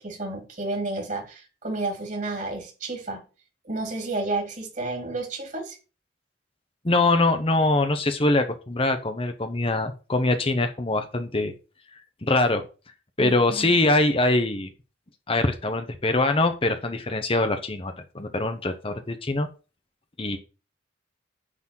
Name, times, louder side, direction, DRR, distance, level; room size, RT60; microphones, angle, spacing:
voice 1, 0.0-3.2 3.6-5.8 13.2-13.7, right 2 dB, 45° right, 3 dB, 3.0 m, -31 dB
voice 2, 6.8-11.5 12.2-12.6 13.2-14.7 15.3-19.5 20.2-20.4, left 2 dB, 30° left, 7 dB, 1.0 m, -23 dB
9.7 x 4.2 x 7.5 m, 0.33 s
head